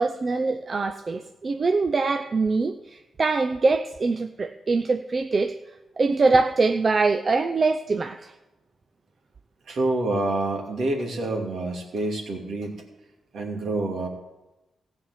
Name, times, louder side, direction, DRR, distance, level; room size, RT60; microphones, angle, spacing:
voice 1, 0.0-5.6 6.0-8.3, right 3 dB, 45° right, 7 dB, 0.6 m, -23 dB
voice 2, 9.7-12.9 13.3-14.1, right 2 dB, 70° right, 1 dB, 2.5 m, -27 dB
15.5 x 5.3 x 8.2 m, 1.0 s
supercardioid pair, 45°, 0 cm